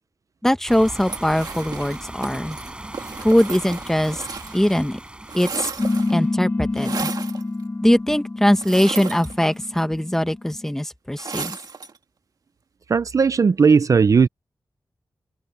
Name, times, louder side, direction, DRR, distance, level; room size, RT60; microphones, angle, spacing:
voice 1, 0.4-2.6 3.2-4.2 4.5-5.0 5.3-5.7 6.1-7.1 7.8-11.6, equal, 5° left, 1.2 m, -21 dB
sound 1, 0.7-6.3, right 1 dB, 15° right, 7.0 m, -38 dB
sound 2, 1.0-4.8 5.1-6.2 6.8-7.4 8.6-9.8 11.2-12.0, right 5 dB, 70° right, 2.5 m, -34 dB
sound 3, 5.8-10.7, left 2 dB, 25° left, 4.4 m, -27 dB
voice 2, 12.9-14.3, right 5 dB, 50° right, 0.5 m, -16 dB
wide cardioid pair, 145°, 7 cm